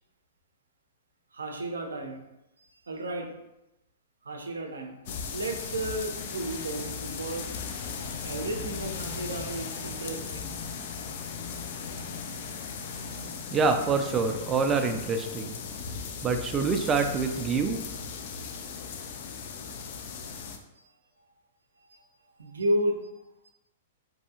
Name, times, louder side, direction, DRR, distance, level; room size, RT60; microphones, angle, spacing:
voice 1, 1.3-2.2 2.6-3.3 4.2-5.0 5.3-7.6 8.2-10.5 20.2-20.3 20.8-20.9 21.9-22.1 22.4-23.1 23.4-23.5, right 1 dB, 90° right, 3 dB, 0.4 m, -33 dB
sound 1, 5.1-20.6, left 5 dB, 55° left, 0.3 m, -37 dB
sound 2, 6.5-15.1, left 3 dB, 85° left, 1.3 m, -47 dB
voice 2, 13.5-15.6 16.2-17.8, right 4 dB, 20° right, 5 dB, 0.3 m, -26 dB
2.7 x 2.3 x 2.7 m, 0.94 s
hypercardioid pair, 120°, 0 cm